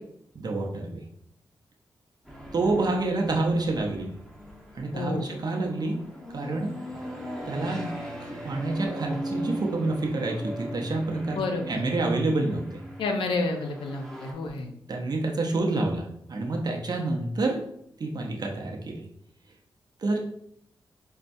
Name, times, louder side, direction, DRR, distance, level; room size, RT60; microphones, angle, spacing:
voice 1, 0.3-1.0 2.5-4.1 4.7-6.0 6.3-6.7 7.5-7.9 8.2-11.4 11.7-12.8 14.9-17.7 18.0-19.1 20.0-20.2, right 2 dB, 50° right, 1 dB, 0.6 m, -28 dB
sound 1, 2.2-14.3, equal, 5° left, 1.0 m, -39 dB
voice 2, 4.9-5.3 11.4-11.9 13.0-14.7, left 3 dB, 90° left, 3 dB, 0.5 m, -29 dB
5.3 x 2.2 x 2.6 m, 0.71 s
cardioid pair, 50°, 9 cm